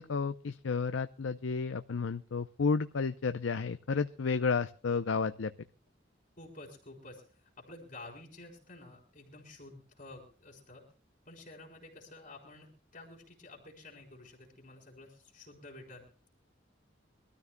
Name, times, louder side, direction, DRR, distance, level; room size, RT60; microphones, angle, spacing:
voice 1, 0.0-5.5, left 5 dB, 85° left, 10 dB, 0.6 m, -32 dB
voice 2, 6.4-10.8 11.3-16.0, left 2 dB, 45° left, 1 dB, 3.7 m, -51 dB
24.5 x 13.0 x 2.2 m, 0.40 s
head